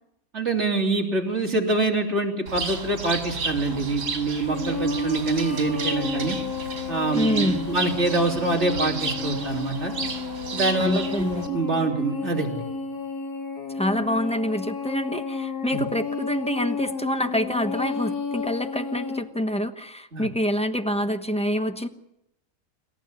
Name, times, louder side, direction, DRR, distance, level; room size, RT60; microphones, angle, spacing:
voice 1, 0.3-6.4 6.9-9.9 10.5-12.6 15.7-15.8 20.1-20.3, right 3 dB, 40° right, 1 dB, 3.5 m, -25 dB
Bird, 2.5-11.5, right 4 dB, 70° right, 3.4 m, -33 dB
sound 1, 4.5-19.2, left 5 dB, 70° left, 3.6 m, -32 dB
voice 2, 7.1-7.7 10.8-11.5 13.7-21.9, equal, 5° left, 8 dB, 0.9 m, -26 dB
27.5 x 14.0 x 9.9 m, 0.86 s
omnidirectional pair, 1.7 m